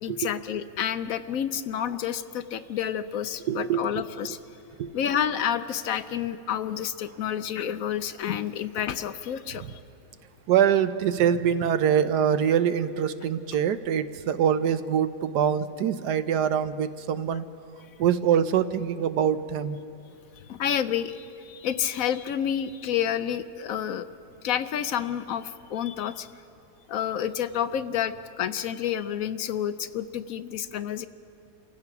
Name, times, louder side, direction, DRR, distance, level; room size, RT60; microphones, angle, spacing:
voice 1, 0.0-4.4 4.9-9.8 20.5-24.1 24.4-26.3 26.9-31.1, left 9 dB, 70° left, 12 dB, 0.9 m, -29 dB
voice 2, 3.5-4.0 4.8-4.9 10.5-17.4 18.0-19.8, right 8 dB, 90° right, 12 dB, 1.3 m, -24 dB
28.0 x 16.0 x 5.9 m, 2.6 s
omnidirectional pair, 1.7 m